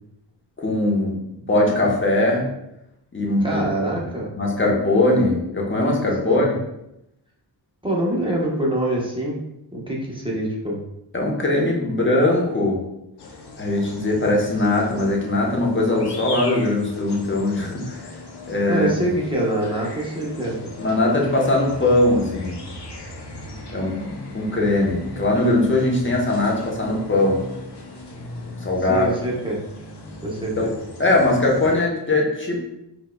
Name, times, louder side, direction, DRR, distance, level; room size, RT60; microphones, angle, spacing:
voice 1, 0.6-2.5 3.1-3.6 4.4-6.6 11.1-12.8 13.6-18.1 18.5-18.9 20.8-22.6 23.7-27.4 28.6-29.1 30.6-30.7 31.0-32.6, left 2 dB, 25° left, -1 dB, 0.9 m, -20 dB
voice 2, 3.4-4.3 6.2-6.5 7.8-9.4 9.7-10.8 18.7-20.6 28.9-29.6 30.2-30.5, right 1 dB, 10° right, -4 dB, 0.9 m, -25 dB
sound 1, 13.2-31.8, left 2 dB, 65° left, 0.7 m, -38 dB
4.5 x 2.3 x 2.2 m, 0.84 s
wide cardioid pair, 60°, 44 cm